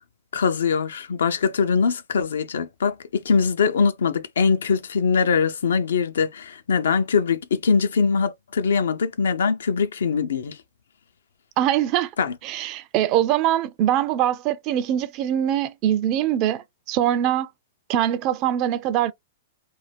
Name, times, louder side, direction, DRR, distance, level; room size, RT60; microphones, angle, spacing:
voice 1, 0.3-3.0 3.2-10.6 12.2-12.4, left 5 dB, 80° left, 0.5 m, -22 dB
voice 2, 11.6-12.1 12.4-17.5 17.9-19.1, right 11 dB, 40° right, 0.4 m, -23 dB
2.5 x 2.1 x 3.3 m
hypercardioid pair, 125°, 0 cm